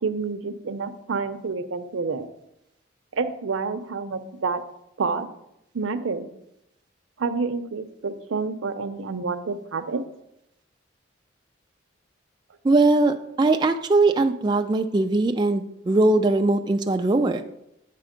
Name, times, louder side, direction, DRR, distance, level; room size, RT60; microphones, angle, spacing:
voice 1, 0.0-2.3 3.1-4.6 5.0-5.3 5.7-6.3 7.2-10.0, right 4 dB, 90° right, 10 dB, 0.6 m, -28 dB
voice 2, 12.6-17.4, right 2 dB, 20° right, 5 dB, 0.3 m, -20 dB
8.4 x 4.3 x 5.0 m, 0.83 s
head